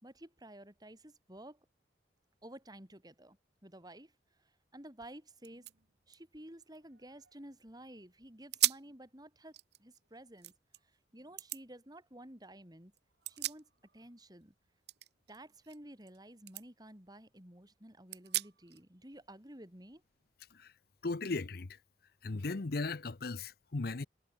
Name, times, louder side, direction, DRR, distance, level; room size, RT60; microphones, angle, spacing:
voice 1, 0.0-1.6 2.4-3.4 3.6-4.1 4.4-5.7 6.1-10.5 11.1-12.9 13.3-14.5 15.3-20.0, right 1 dB, 20° right, 4.6 m, -53 dB
sound 1, 5.0-5.1 5.4-7.6 8.0-8.1 8.5-9.0 9.4-10.8 11.4-11.6 13.0-14.1 14.4-16.2 16.5-16.6 17.1-17.2 18.1-18.8, right 14 dB, 65° right, 2.7 m, -38 dB
voice 2, 21.0-21.8 22.2-24.1, left 3 dB, 55° left, 0.7 m, -37 dB
head